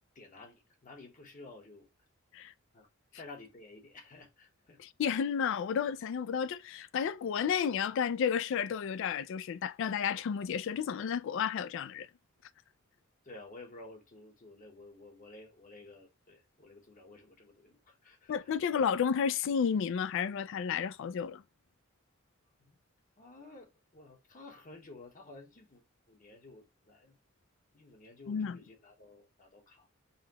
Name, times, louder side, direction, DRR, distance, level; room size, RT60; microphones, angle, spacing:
voice 1, 0.1-1.9 2.7-2.9 3.1-4.8 13.2-18.5 22.7-22.8 23.2-23.7 23.9-27.2 27.7-29.9, left 2 dB, 40° left, 1.1 m, -52 dB
voice 2, 4.8-12.1 18.3-21.4 28.3-28.6, left 7 dB, 60° left, 0.3 m, -32 dB
5.6 x 2.2 x 2.8 m
head